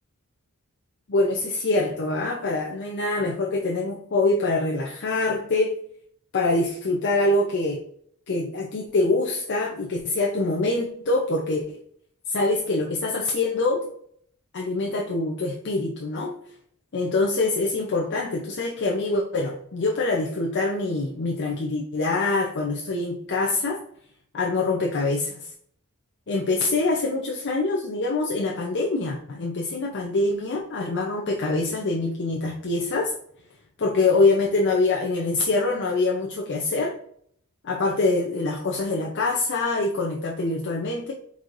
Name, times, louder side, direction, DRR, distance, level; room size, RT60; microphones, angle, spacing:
voice 1, 1.1-5.7 6.3-7.8 8.3-11.8 12.3-13.9 14.5-16.3 16.9-23.8 24.3-25.5 26.3-33.1 33.8-36.9 37.6-41.1, left 2 dB, 55° left, 0 dB, 0.6 m, -24 dB
4.7 x 4.1 x 2.5 m, 0.64 s
head